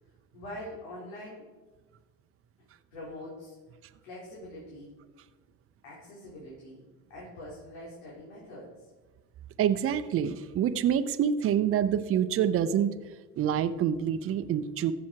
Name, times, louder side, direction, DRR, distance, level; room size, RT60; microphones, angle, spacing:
voice 1, 0.3-1.5 2.9-3.6 4.0-4.9 5.8-8.8, left 1 dB, 85° left, -6 dB, 4.1 m, -44 dB
voice 2, 9.6-12.9 13.4-14.9, right 9 dB, 45° right, 10 dB, 0.8 m, -26 dB
15.0 x 7.2 x 4.7 m, 1.3 s
supercardioid pair, 100°, 31 cm